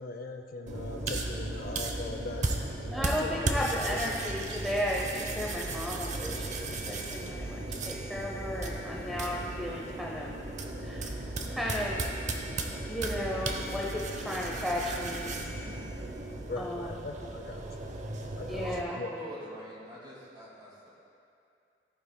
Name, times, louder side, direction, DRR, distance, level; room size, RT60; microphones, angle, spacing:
voice 1, 0.0-2.4 2.8-4.5 16.5-17.7 18.4-18.7 19.0-19.1, left 3 dB, 55° left, 5 dB, 0.5 m, -40 dB
sound 1, 0.7-18.8, right 2 dB, 40° right, 0.7 m, -36 dB
voice 2, 2.9-10.3 10.8-11.1 11.5-12.0 12.9-15.3 16.6-16.9 18.5-19.0, equal, ahead, -4 dB, 0.6 m, -34 dB
voice 3, 18.6-20.9, equal, 25° right, -5 dB, 2.3 m, -44 dB
14.5 x 9.2 x 2.2 m, 2.5 s
head